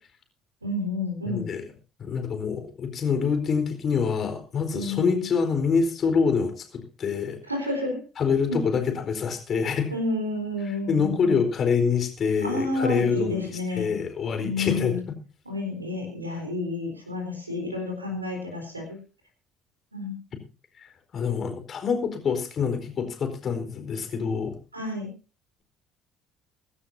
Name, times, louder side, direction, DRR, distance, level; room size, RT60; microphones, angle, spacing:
voice 1, 0.6-1.4 4.7-5.2 7.5-8.0 8.5-8.6 9.9-11.4 12.4-14.0 14.4-15.0 15.5-18.8 19.9-20.1 24.7-25.1, left 2 dB, 90° right, 3 dB, 4.0 m, -30 dB
voice 2, 1.3-1.6 2.0-7.4 8.2-9.9 10.6-15.2 21.1-24.5, left 6 dB, 45° left, 6 dB, 4.3 m, -26 dB
23.5 x 12.5 x 2.7 m, 0.33 s
figure-of-eight pair, 55°, 0 cm